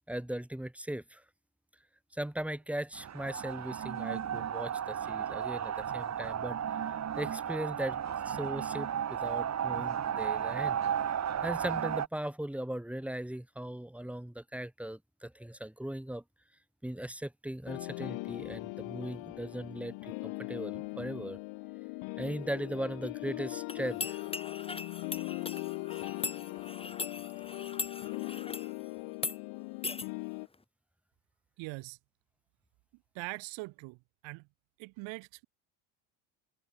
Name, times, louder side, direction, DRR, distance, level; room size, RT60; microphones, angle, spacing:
voice 1, 0.1-1.2 2.1-6.6 7.2-8.0 8.2-11.1 11.4-16.2 16.8-21.4 22.2-24.0, right 1 dB, 5° right, 6.6 m, -38 dB
sound 1, 3.0-12.1, right 9 dB, 35° right, 4.2 m, -34 dB
sound 2, 17.7-30.5, left 27 dB, 75° left, 5.8 m, -40 dB
sound 3, 23.7-28.7 29.1-29.4 29.8-30.1, left 3 dB, 10° left, 2.0 m, -40 dB
voice 2, 31.6-32.0 33.1-34.0 34.2-34.5 34.8-35.5, right 24 dB, 75° right, 3.3 m, -42 dB
cardioid pair, 120°, 45 cm